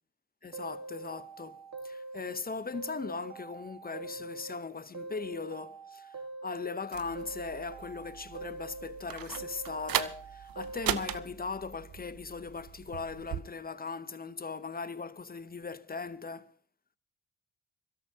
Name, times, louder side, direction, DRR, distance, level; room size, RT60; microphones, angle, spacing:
voice 1, 0.4-1.6 1.8-16.6, left 4 dB, 25° left, 0.9 m, -39 dB
sound 1, 0.5-2.4 2.7-4.6 4.9-6.8 7.2-9.0 9.4-11.2, right 3 dB, 45° right, 1.8 m, -44 dB
sound 2, 6.9-13.4, right 11 dB, 60° right, 0.8 m, -38 dB
25.5 x 12.5 x 2.9 m
hypercardioid pair, 45°, 39 cm